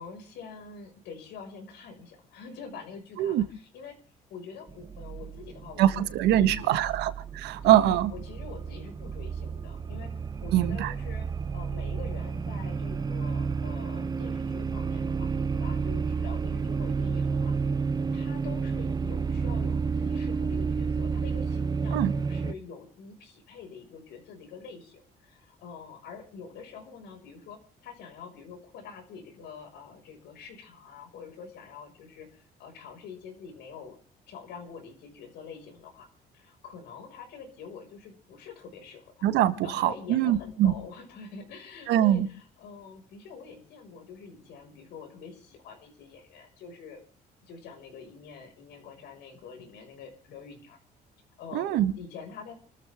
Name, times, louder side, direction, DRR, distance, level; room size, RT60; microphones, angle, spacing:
voice 1, 0.0-4.0 4.3-6.9 7.6-10.1 10.4-11.3 11.5-22.0 22.3-34.0 34.3-36.1 36.3-39.3 39.6-47.0 47.4-50.8 51.4-52.5, left 5 dB, 80° left, 5.9 m, -46 dB
sound 1, 4.7-22.5, right 5 dB, 25° right, 0.9 m, -31 dB
voice 2, 5.8-8.1 10.5-10.9 21.9-22.1 39.2-40.7 41.9-42.3 51.5-51.9, right 12 dB, 85° right, 1.5 m, -23 dB
29.0 x 13.5 x 3.7 m
cardioid pair, 110°, 17 cm